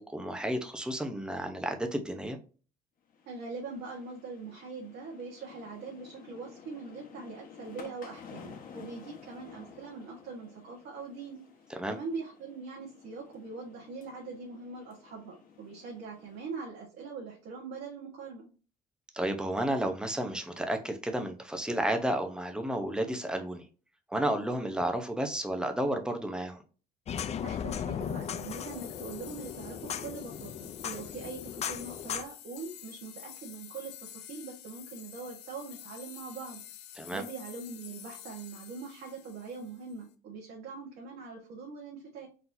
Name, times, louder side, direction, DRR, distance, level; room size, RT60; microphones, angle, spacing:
voice 1, 0.0-2.4 11.7-12.0 19.1-23.6 24.1-26.6 37.0-37.2, right 1 dB, 5° right, 0.8 m, -32 dB
sound 1, 3.1-16.6, left 6 dB, 55° left, 1.2 m, -52 dB
voice 2, 3.2-11.4 11.9-18.5 27.4-36.6 37.1-42.3, right 4 dB, 75° right, 1.4 m, -42 dB
sound 2, 27.1-32.2, left 8 dB, 40° left, 0.5 m, -37 dB
sound 3, 28.0-40.0, left 12 dB, 80° left, 0.6 m, -49 dB
4.3 x 4.0 x 2.7 m
cardioid pair, 110°, 17 cm